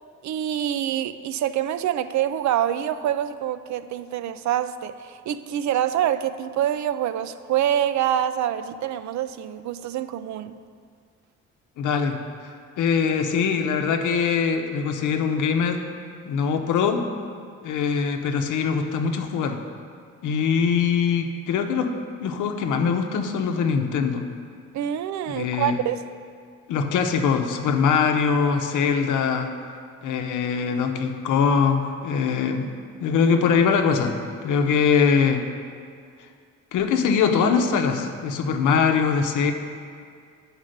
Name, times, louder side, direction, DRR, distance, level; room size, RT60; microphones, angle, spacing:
voice 1, 0.2-10.6 24.7-26.0, right 11 dB, 70° right, 12 dB, 0.5 m, -26 dB
voice 2, 11.8-12.5 12.8-15.8 16.2-17.0 17.6-19.6 20.2-21.9 22.2-24.2 25.3-25.8 26.7-29.5 30.0-32.7 33.0-34.2 34.4-35.4 36.7-39.5, left 6 dB, 85° left, 5 dB, 0.9 m, -22 dB
10.0 x 5.0 x 6.5 m, 2.2 s
cardioid pair, 90°, 30 cm